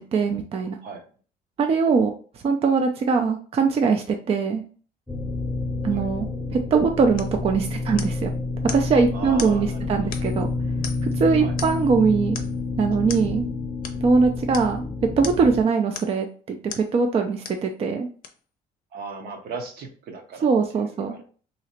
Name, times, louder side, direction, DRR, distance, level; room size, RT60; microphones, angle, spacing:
voice 1, 0.1-0.7 1.6-2.1 2.4-4.6 5.8-8.3 8.7-10.5 11.0-12.4 12.8-13.5 14.0-14.9 15.2-18.1 20.4-21.2, right 5 dB, 35° right, 4 dB, 0.4 m, -22 dB
sound 1, 5.1-15.6, left 3 dB, ahead, 0.7 m, -29 dB
sound 2, 7.2-7.4 8.0-8.3 8.7-8.9 9.4-9.6 10.1-10.4 10.8-11.2 11.6-11.9 12.3-12.6 13.1-13.3 13.8-14.0 14.5-14.7 15.2-15.5 15.9-16.2 16.7-16.9 17.4-17.7 18.2-18.3, left 7 dB, 55° left, 0.6 m, -37 dB
voice 2, 9.1-10.1 11.4-11.6 18.9-21.2, right 4 dB, 65° right, 4 dB, 0.8 m, -37 dB
3.1 x 2.9 x 2.8 m, 0.41 s
cardioid pair, 110°, 17 cm